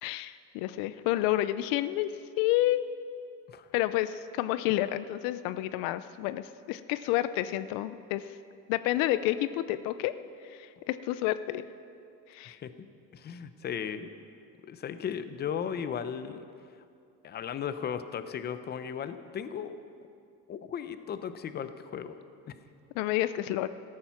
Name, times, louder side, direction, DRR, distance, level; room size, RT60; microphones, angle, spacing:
voice 1, 0.0-2.1 2.4-2.8 3.7-8.2 8.7-10.1 10.4-11.6 12.3-12.6 23.0-23.7, left 15 dB, 85° left, 13 dB, 0.6 m, -29 dB
voice 2, 13.1-14.1 14.7-16.4 17.2-19.8 20.5-22.2, left 8 dB, 30° left, 11 dB, 0.7 m, -36 dB
14.0 x 13.5 x 5.8 m, 2.5 s
cardioid pair, 140°, 34 cm